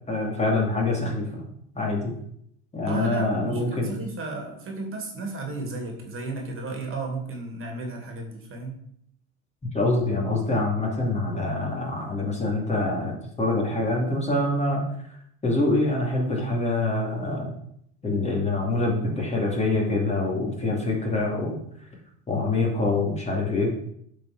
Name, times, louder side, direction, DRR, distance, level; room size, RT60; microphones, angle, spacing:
voice 1, 0.1-1.4 1.7-2.1 2.7-3.9 9.7-14.9 15.4-17.5 18.0-21.6 22.3-23.7, left 2 dB, 20° left, -1 dB, 2.7 m, -25 dB
voice 2, 2.9-8.8, right 3 dB, 40° right, 2 dB, 2.5 m, -34 dB
8.2 x 4.8 x 6.2 m, 0.70 s
supercardioid pair, 105°, 34 cm